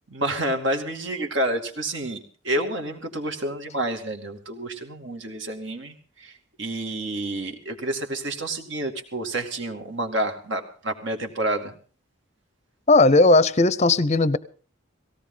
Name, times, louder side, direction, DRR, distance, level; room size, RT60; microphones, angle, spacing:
voice 1, 0.1-2.2 2.4-11.7, right 1 dB, 65° right, 5 dB, 2.4 m, -29 dB
voice 2, 12.9-14.4, left 2 dB, 30° left, 17 dB, 0.6 m, -17 dB
18.5 x 17.0 x 3.9 m, 0.40 s
head